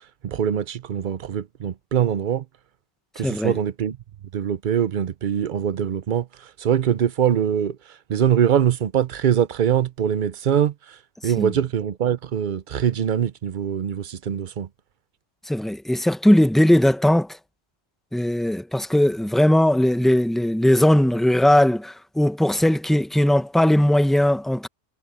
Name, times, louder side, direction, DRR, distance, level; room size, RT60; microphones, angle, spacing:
voice 1, 0.2-2.4 3.2-4.0 4.3-6.2 6.6-7.8 8.1-10.7 11.2-14.7, right 9 dB, 50° right, 0.7 m, -23 dB
voice 2, 3.2-3.6 11.2-11.5 15.5-17.4 18.1-24.7, left 1 dB, ahead, 0.8 m, -19 dB
omnidirectional pair, 1.1 m